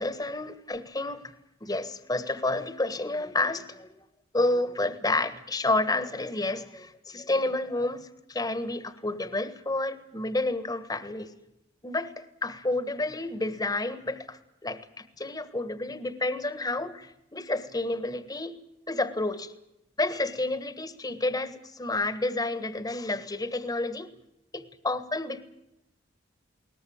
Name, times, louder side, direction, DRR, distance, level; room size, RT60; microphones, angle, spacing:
voice 1, 0.0-1.3 1.6-4.0 4.3-11.3 11.8-18.6 18.9-19.5 20.0-24.1 24.5-25.4, left 2 dB, 20° left, 12 dB, 1.5 m, -30 dB
21.5 x 19.5 x 8.7 m, 0.84 s
head